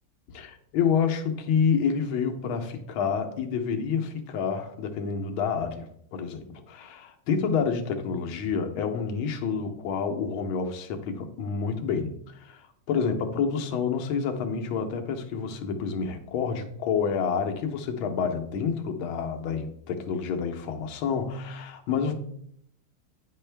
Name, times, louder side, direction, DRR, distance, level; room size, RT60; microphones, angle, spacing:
voice 1, 0.3-5.9 6.1-12.1 12.4-12.6 12.9-22.1, left 6 dB, 75° left, 5 dB, 1.6 m, -28 dB
9.6 x 4.6 x 3.3 m, 0.69 s
omnidirectional pair, 2.3 m